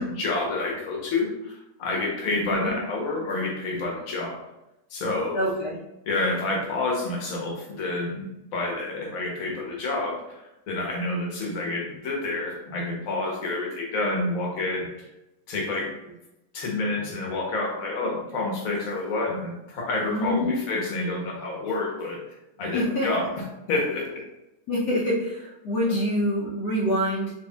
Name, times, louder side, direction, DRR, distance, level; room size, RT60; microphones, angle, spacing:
voice 1, 0.0-4.4 4.9-5.4 6.1-14.9 15.5-15.9 16.5-22.2 22.6-23.2 23.7-24.2, left 2 dB, 60° left, -2 dB, 1.3 m, -28 dB
voice 2, 2.3-2.7 5.3-5.8 20.0-20.6 22.7-23.3 24.7-27.3, equal, 85° left, -6 dB, 1.4 m, -26 dB
4.3 x 3.1 x 2.3 m, 0.93 s
omnidirectional pair, 1.7 m